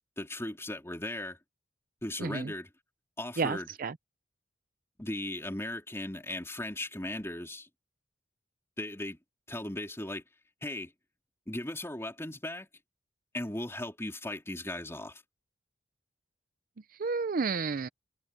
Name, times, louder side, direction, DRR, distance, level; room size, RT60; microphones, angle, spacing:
voice 1, 0.0-1.4 2.0-2.7 3.2-3.7 5.0-7.7 8.8-9.2 9.5-10.2 10.6-10.9 11.5-12.7 13.3-15.2, left 1 dB, 15° left, 3.5 m, -37 dB
voice 2, 2.2-2.5 3.4-3.9 17.0-17.9, right 4 dB, 50° right, 0.5 m, -31 dB
head